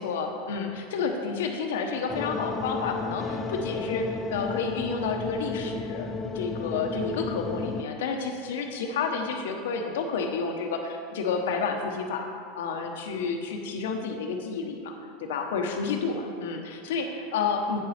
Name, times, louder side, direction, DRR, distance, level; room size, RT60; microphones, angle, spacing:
voice 1, 0.0-12.3 12.5-17.8, left 5 dB, 80° left, 3 dB, 1.1 m, -30 dB
sound 1, 2.1-7.8, left 4 dB, 20° left, 0.4 m, -33 dB
8.6 x 7.2 x 4.3 m, 2.3 s
supercardioid pair, 135°, 0 cm